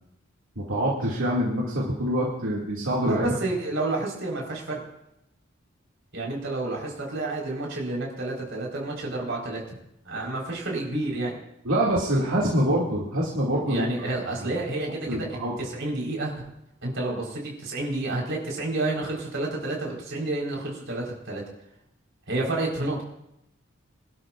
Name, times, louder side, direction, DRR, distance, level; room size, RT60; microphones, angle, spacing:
voice 1, 0.6-3.4 11.6-13.9 14.4-14.5 15.1-15.6, equal, 85° right, -6 dB, 2.3 m, -25 dB
voice 2, 3.0-4.8 6.1-9.6 10.0-11.4 13.7-16.5 16.8-21.4 22.3-23.0, right 2 dB, 60° right, -2 dB, 4.4 m, -30 dB
26.0 x 12.0 x 2.5 m, 0.82 s
head